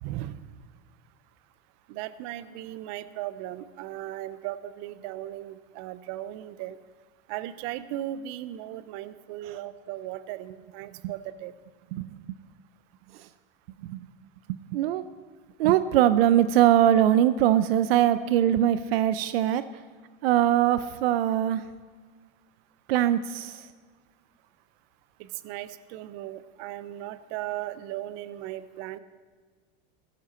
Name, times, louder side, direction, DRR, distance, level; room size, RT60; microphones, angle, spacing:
voice 1, 0.0-0.5 1.9-6.8 7.3-11.5 25.2-29.0, right 13 dB, 60° right, 15 dB, 0.8 m, -37 dB
voice 2, 14.5-15.1 15.6-19.6 20.2-21.7 22.9-23.7, right 11 dB, 85° right, 13 dB, 0.6 m, -22 dB
15.5 x 14.0 x 4.3 m, 1.5 s
supercardioid pair, 125°, 29 cm